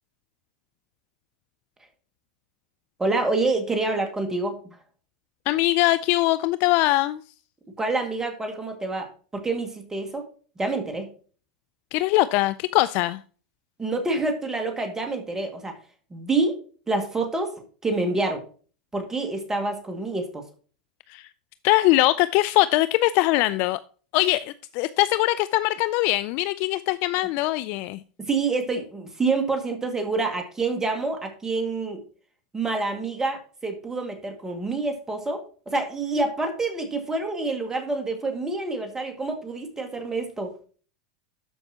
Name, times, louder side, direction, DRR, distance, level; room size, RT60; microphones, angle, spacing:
voice 1, 3.0-4.6 7.8-10.3 10.6-11.1 13.8-15.8 16.1-18.4 18.9-20.5 28.2-32.0 32.5-40.5, right 3 dB, 15° right, 2.0 m, -27 dB
voice 2, 5.5-7.2 11.9-13.2 21.1-21.3 21.6-23.8 24.1-28.0, left 18 dB, 55° left, 0.4 m, -22 dB
12.5 x 5.3 x 2.9 m
hypercardioid pair, 105°, 4 cm